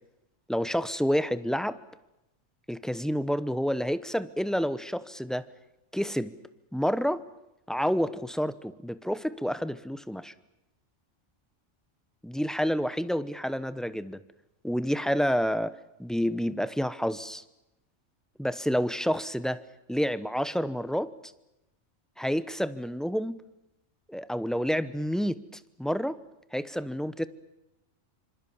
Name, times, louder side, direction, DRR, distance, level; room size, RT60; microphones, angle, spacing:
voice 1, 0.5-1.8 2.7-5.5 5.9-6.3 6.7-7.2 7.7-10.3 12.2-14.2 14.6-15.7 16.0-17.4 18.4-19.6 19.9-21.1 22.2-23.4 24.1-25.4 25.8-26.2 26.5-27.3, equal, ahead, 14 dB, 0.8 m, -29 dB
27.0 x 25.5 x 7.2 m, 0.91 s
omnidirectional pair, 1.3 m